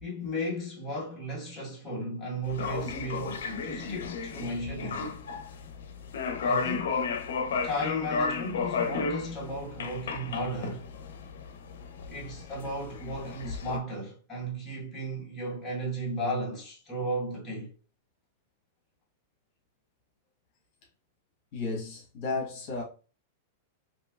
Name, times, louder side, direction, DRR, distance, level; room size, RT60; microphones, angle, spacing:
voice 1, 0.0-5.1 6.4-6.9 7.6-10.8 12.1-17.7, equal, 10° left, 1.2 m, -35 dB
sound 1, 2.4-13.8, left 5 dB, 85° left, 0.5 m, -33 dB
voice 2, 21.5-22.8, left 3 dB, 50° left, 1.0 m, -33 dB
3.0 x 2.7 x 2.3 m
supercardioid pair, 160°, 0 cm